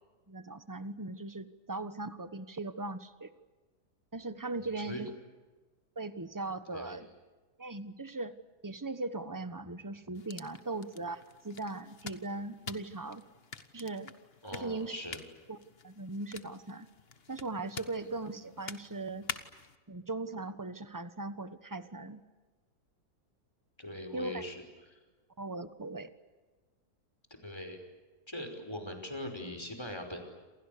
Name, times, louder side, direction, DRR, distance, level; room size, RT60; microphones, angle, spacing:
voice 1, 0.3-3.3 4.1-5.1 6.0-7.1 7.6-8.3 8.6-13.2 13.7-14.1 14.5-14.9 15.5-15.6 15.8-16.9 17.3-19.3 19.9-22.2 24.1-24.4 25.4-26.1, right 2 dB, 15° right, 12 dB, 1.1 m, -39 dB
voice 2, 4.6-5.0 6.7-7.0 14.4-15.2 17.9-18.0 23.8-24.6 24.9-25.0 27.4-27.8 28.3-30.3, left 1 dB, 15° left, 4 dB, 5.3 m, -41 dB
sound 1, 10.1-19.8, left 5 dB, 40° left, 1.5 m, -47 dB
28.5 x 28.0 x 6.8 m, 1.3 s
omnidirectional pair, 1.7 m